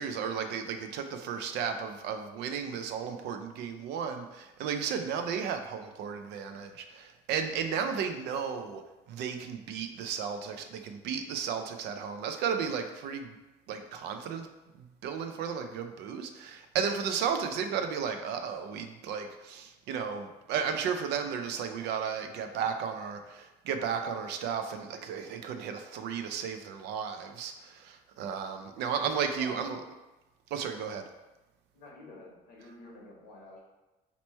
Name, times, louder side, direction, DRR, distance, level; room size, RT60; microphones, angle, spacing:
voice 1, 0.0-8.8 9.1-13.4 13.7-14.5 14.7-29.8 30.5-31.1, right 7 dB, 80° right, 7 dB, 0.4 m, -34 dB
voice 2, 29.0-29.7 31.7-33.6, left 2 dB, 90° left, -2 dB, 1.0 m, -49 dB
2.9 x 2.2 x 4.1 m, 1.1 s
cardioid pair, 110°, 17 cm